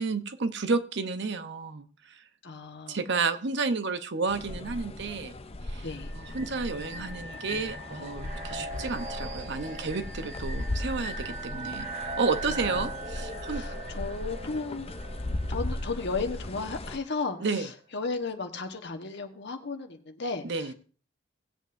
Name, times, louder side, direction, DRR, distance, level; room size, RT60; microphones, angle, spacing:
voice 1, 0.0-2.2 2.9-5.3 5.6-5.9 6.1-13.6 17.4-17.7 20.4-20.7, right 4 dB, 65° right, 10 dB, 0.8 m, -31 dB
voice 2, 2.4-3.0 5.8-6.1 12.8-12.9 13.5-14.9 15.5-20.4, left 4 dB, 65° left, 5 dB, 1.3 m, -34 dB
sound 1, 4.3-17.0, left 1 dB, 30° left, 0.7 m, -37 dB
sound 2, 5.9-16.7, right 2 dB, 40° right, 1.3 m, -40 dB
19.0 x 8.2 x 2.6 m, 0.40 s
head